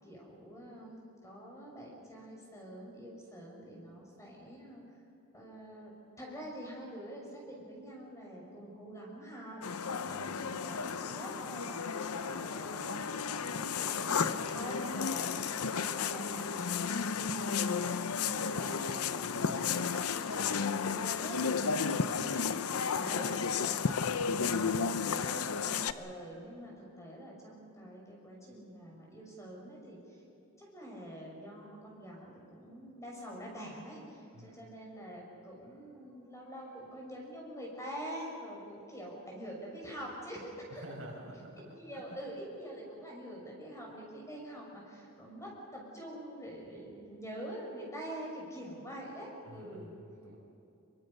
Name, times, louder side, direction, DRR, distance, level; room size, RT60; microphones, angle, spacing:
voice 1, 0.0-4.8 5.3-5.9 6.2-9.7 10.0-21.9 22.5-25.5 25.9-30.2 30.6-40.8 41.6-50.0, equal, 15° left, -2 dB, 6.0 m, -46 dB
sound 1, 9.6-25.9, left 6 dB, 75° left, 0.8 m, -33 dB
voice 2, 10.1-10.6 20.4-20.8 22.1-22.2 34.3-34.5 40.7-42.2 49.4-50.4, equal, 65° right, -1 dB, 5.7 m, -50 dB
26.5 x 23.5 x 5.6 m, 2.8 s
head